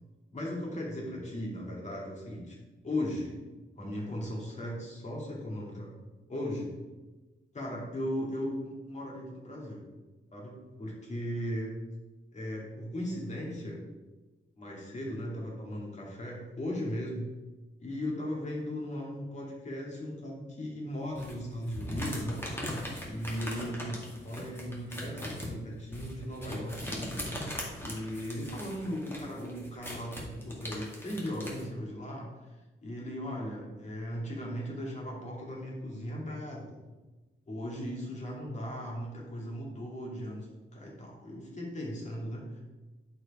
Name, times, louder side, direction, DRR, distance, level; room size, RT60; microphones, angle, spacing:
voice 1, 0.3-2.6 2.8-3.4 3.8-5.9 6.3-6.7 7.5-9.8 10.3-11.7 12.3-13.8 14.6-17.3 17.8-22.4 23.1-24.0 24.2-27.0 27.8-36.8 37.5-42.6, equal, 35° left, -3 dB, 2.5 m, -37 dB
sound 1, 21.1-31.6, left 1 dB, 10° left, 2.0 m, -40 dB
10.0 x 4.9 x 4.9 m, 1.2 s
wide cardioid pair, 155°, 21 cm